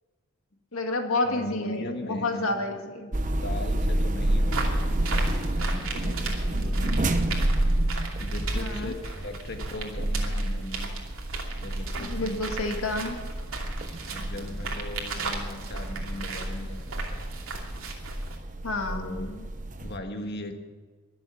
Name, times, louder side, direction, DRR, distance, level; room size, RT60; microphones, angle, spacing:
voice 1, 0.7-3.1 8.6-8.9 12.0-13.2 18.6-19.4, left 2 dB, 90° left, 4 dB, 2.1 m, -30 dB
voice 2, 1.2-2.6 3.4-7.1 8.2-11.0 11.5-12.4 14.1-16.8 17.1-17.3 18.9-19.3 19.8-20.5, left 1 dB, 50° left, 4 dB, 1.7 m, -38 dB
sound 1, 3.1-20.0, right 1 dB, 35° right, 0.9 m, -30 dB
sound 2, 4.4-18.4, right 3 dB, 85° right, 2.7 m, -35 dB
22.5 x 7.7 x 7.3 m, 1.4 s
head